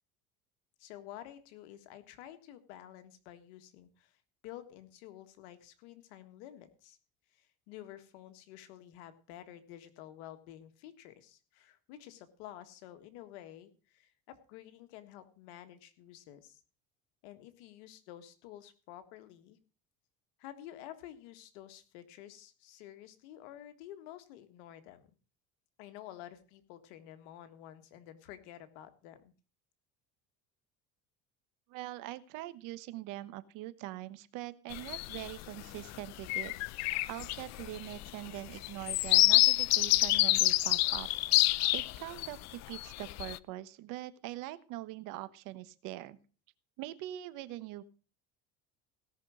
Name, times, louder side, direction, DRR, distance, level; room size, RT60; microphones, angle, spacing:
voice 1, 0.8-7.0 7.3-16.6 17.2-19.6 20.4-25.1 25.8-29.3, left 12 dB, 90° left, 9 dB, 1.7 m, -51 dB
voice 2, 31.7-36.5 37.1-41.1 41.7-46.2 46.8-47.8, right 15 dB, 70° right, 14 dB, 1.2 m, -43 dB
sound 1, 34.7-35.3 35.8-36.0 36.2-42.3 42.7-43.4, left 18 dB, 55° left, 0.5 m, -27 dB
17.5 x 6.1 x 6.3 m, 0.37 s
cardioid pair, 130°, 33 cm